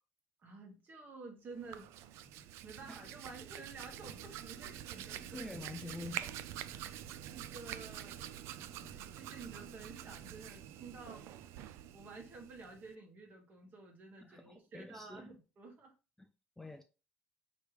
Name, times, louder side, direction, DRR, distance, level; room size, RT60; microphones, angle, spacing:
voice 1, 0.4-1.9 2.6-5.5 6.7-8.3 8.8-11.3 11.9-15.9, right 3 dB, 40° right, 1.4 m, -51 dB
Hands, 1.5-12.9, right 11 dB, 80° right, 0.3 m, -47 dB
voice 2, 5.3-6.4 8.8-8.9 14.2-15.3 16.2-16.3 16.6-16.8, left 2 dB, 5° left, 0.3 m, -47 dB
4.7 x 3.2 x 3.2 m
cardioid pair, 115°, 5 cm